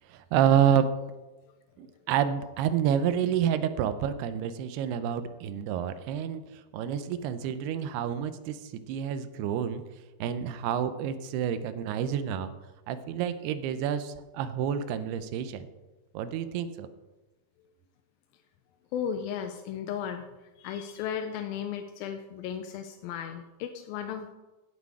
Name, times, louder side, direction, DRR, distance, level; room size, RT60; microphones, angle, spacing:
voice 1, 0.1-0.9 1.8-9.8 10.2-12.5 12.9-15.7 16.1-16.9, right 9 dB, 80° right, 11 dB, 2.7 m, -28 dB
voice 2, 18.9-20.3 20.6-24.3, left 8 dB, 80° left, 6 dB, 2.2 m, -35 dB
16.5 x 6.3 x 4.8 m, 1.1 s
omnidirectional pair, 4.7 m